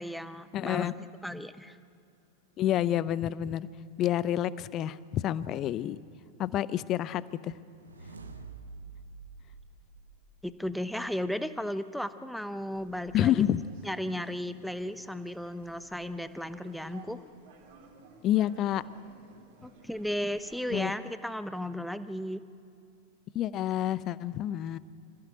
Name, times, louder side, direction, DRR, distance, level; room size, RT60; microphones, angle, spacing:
voice 1, 0.0-1.8 10.4-13.4 13.8-17.2 19.6-22.4, equal, ahead, 12 dB, 0.8 m, -35 dB
voice 2, 0.5-0.9 2.6-3.7 4.0-6.1 6.4-7.5 13.1-13.6 18.2-18.8 20.7-20.9 23.3-24.8, left 12 dB, 35° left, 18 dB, 0.6 m, -28 dB
sound 1, 7.5-10.8, right 4 dB, 75° right, 1.3 m, -48 dB
sound 2, 12.7-20.7, right 4 dB, 50° right, 3.4 m, -56 dB
26.0 x 15.0 x 7.7 m, 2.7 s
figure-of-eight pair, 90°, 0 cm